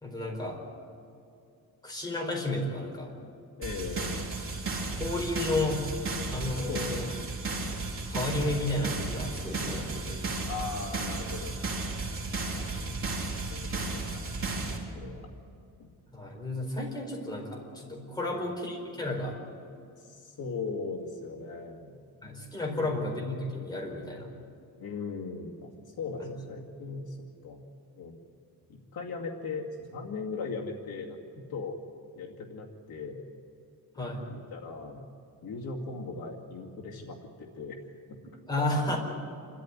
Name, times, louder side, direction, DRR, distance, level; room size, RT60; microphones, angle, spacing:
voice 1, 0.0-0.6 1.8-3.1 4.9-5.9 6.3-7.1 8.1-10.2 16.1-19.4 22.2-24.3 26.2-26.3 33.9-34.3 38.5-39.0, left 2 dB, 10° left, -1 dB, 4.5 m, -32 dB
voice 2, 3.6-4.2 6.7-7.2 10.4-11.6 12.6-13.1 13.4-15.3 15.8-15.9 18.2-18.5 20.0-22.0 22.7-23.0 24.8-27.2 27.4-27.7 28.0-28.2 28.7-31.8 32.2-33.3 34.0-35.0 35.4-38.2 38.8-39.0, left 4 dB, 70° left, -1 dB, 2.4 m, -39 dB
sound 1, 3.6-14.8, right 3 dB, 35° right, 4.3 m, -34 dB
28.0 x 13.5 x 9.8 m, 2.4 s
wide cardioid pair, 170°, 38 cm